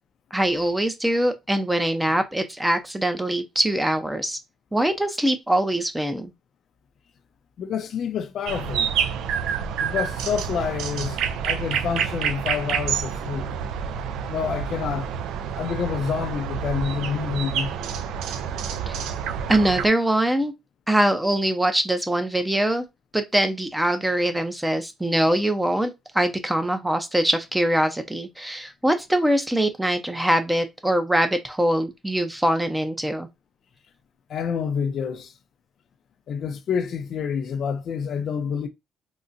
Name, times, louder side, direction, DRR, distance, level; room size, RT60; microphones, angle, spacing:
voice 1, 0.3-4.4 4.7-6.3 18.9-19.0 19.5-20.5 20.9-22.8 23.1-33.3, right 1 dB, 10° right, 0.5 m, -23 dB
voice 2, 7.6-8.9 9.8-13.5 14.3-15.1 15.6-17.7 34.3-35.3 36.3-38.7, left 7 dB, 65° left, 0.4 m, -28 dB
sound 1, 8.5-19.9, right 8 dB, 90° right, 0.3 m, -28 dB
3.8 x 2.1 x 2.5 m
cardioid pair, 90°, 0 cm